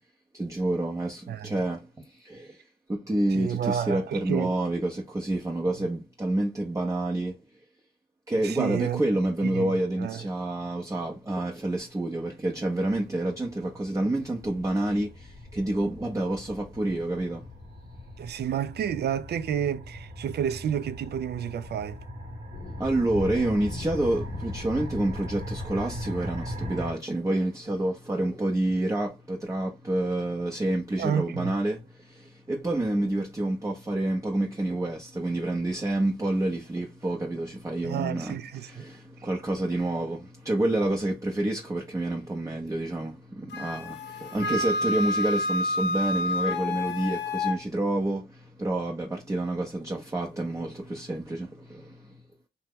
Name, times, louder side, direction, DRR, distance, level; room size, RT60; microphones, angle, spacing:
voice 1, 0.3-2.6 2.9-7.4 8.3-17.5 22.8-52.2, right 1 dB, 20° right, 0.6 m, -28 dB
voice 2, 3.3-4.6 8.4-9.0 9.4-9.7 10.0-10.3 18.2-22.0 31.0-31.6 37.8-38.8 44.4-44.5, right 9 dB, 70° right, 0.4 m, -30 dB
sound 1, 12.6-26.9, equal, 35° right, 1.0 m, -40 dB
sound 2, 14.4-26.9, left 3 dB, 40° left, 0.5 m, -45 dB
Wind instrument woodwind instrument, 43.5-47.6, left 2 dB, 90° left, 0.5 m, -29 dB
2.8 x 2.1 x 3.5 m
cardioid pair, 70°, 18 cm